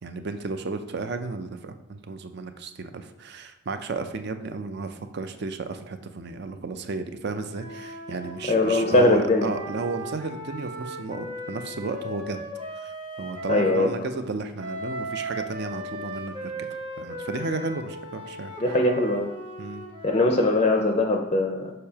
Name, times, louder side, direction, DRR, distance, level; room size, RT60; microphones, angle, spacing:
voice 1, 0.0-12.4 12.8-16.7 17.0-18.5 19.6-19.9, right 3 dB, 50° right, 8 dB, 0.4 m, -33 dB
Wind instrument woodwind instrument, 7.5-13.9 14.6-20.6, equal, 20° right, 0.8 m, -37 dB
voice 2, 8.5-9.6 13.5-13.9 18.6-19.3 20.0-21.7, left 2 dB, 30° left, 3 dB, 0.4 m, -21 dB
6.7 x 5.4 x 2.8 m, 0.89 s
head